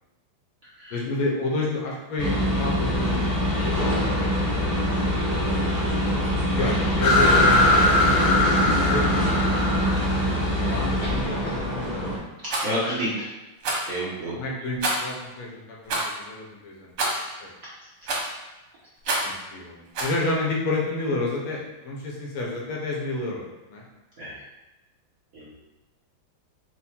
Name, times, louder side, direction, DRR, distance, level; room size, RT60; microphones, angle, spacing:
voice 1, 0.9-5.4 6.5-7.6 8.0-9.4 10.6-12.1 14.3-16.9 17.4-17.5 19.2-23.4 23.7-23.8, left 2 dB, 90° left, -3 dB, 1.8 m, -30 dB
sound 1, 2.2-12.2, equal, 35° left, 0.5 m, -24 dB
sound 2, 7.0-11.6, left 2 dB, 65° left, 1.1 m, -22 dB
Rattle, 12.5-12.7 13.6-13.9 14.8-15.2 15.9-16.1 17.0-17.3 18.1-18.4 19.0-19.4 20.0-20.2, right 2 dB, 85° right, 1.9 m, -27 dB
voice 2, 12.6-13.3 13.9-14.4 17.1-17.3 24.2-24.4 25.3-25.5, equal, 55° right, -8 dB, 0.9 m, -30 dB
4.8 x 2.2 x 4.2 m, 1.0 s
omnidirectional pair, 2.4 m